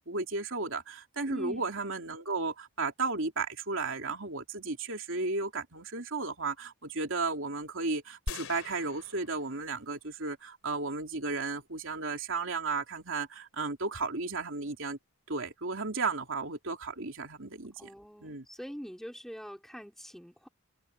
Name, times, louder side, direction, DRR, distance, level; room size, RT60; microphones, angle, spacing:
voice 1, 0.0-15.0 15.3-17.9 18.2-18.4, right 3 dB, 65° right, 2.9 m, -34 dB
voice 2, 1.3-1.7 17.8-20.5, equal, ahead, 4.8 m, -43 dB
sound 1, 8.3-10.0 10.5-10.6, left 2 dB, 75° left, 3.3 m, -42 dB
head